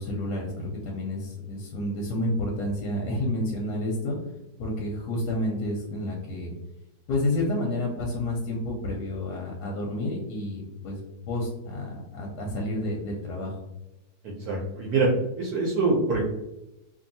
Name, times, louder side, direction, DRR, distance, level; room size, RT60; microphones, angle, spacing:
voice 1, 0.0-4.2 4.6-6.5 7.1-11.0 11.3-13.6, left 1 dB, 70° left, -1 dB, 1.0 m, -30 dB
voice 2, 14.2-15.1 15.4-16.2, right 3 dB, 70° right, -3 dB, 0.9 m, -25 dB
2.7 x 2.6 x 2.6 m, 0.93 s
omnidirectional pair, 2.1 m